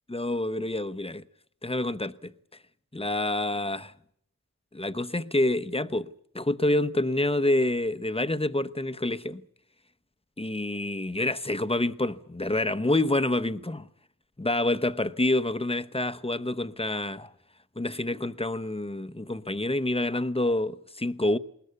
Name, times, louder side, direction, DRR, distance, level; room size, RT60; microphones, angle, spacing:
voice 1, 0.1-1.2 1.6-2.3 2.9-3.9 4.7-9.4 10.4-13.9 14.4-17.3 17.8-21.4, left 1 dB, 15° left, 0.9 m, -27 dB
20.5 x 19.5 x 8.3 m
wide cardioid pair, 50°, 36 cm